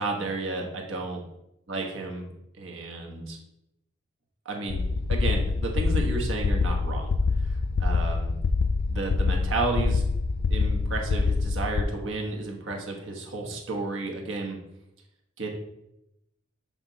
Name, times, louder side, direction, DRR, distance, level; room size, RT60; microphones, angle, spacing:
voice 1, 0.0-1.2 1.7-2.3 2.6-3.4 4.4-4.8 5.1-8.3 8.9-10.0 10.5-14.6 15.4-15.5, right 3 dB, 75° right, 1 dB, 1.3 m, -32 dB
sound 1, 4.7-11.8, left 4 dB, 60° left, 0.3 m, -25 dB
7.3 x 3.5 x 4.1 m, 0.84 s
head